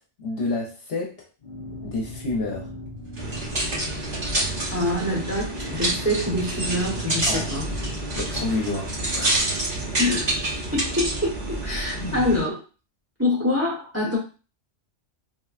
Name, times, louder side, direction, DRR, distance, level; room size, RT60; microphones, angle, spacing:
voice 1, 0.2-1.1 1.8-2.7 7.3-7.4 8.1-9.6 9.9-10.0 12.0-12.3, left 2 dB, 60° left, -2 dB, 0.9 m, -29 dB
sound 1, 1.4-9.4, left 1 dB, 45° left, 0.4 m, -39 dB
sound 2, 3.2-12.4, right 2 dB, 45° right, 0.9 m, -33 dB
sound 3, 3.2-11.2 11.8-11.9, right 1 dB, 80° right, 2.1 m, -27 dB
voice 2, 4.7-7.7 10.0-10.3 10.7-12.6 13.2-14.2, left 1 dB, 15° right, -5 dB, 0.8 m, -25 dB
3.5 x 2.1 x 2.4 m, 0.33 s
omnidirectional pair, 1.2 m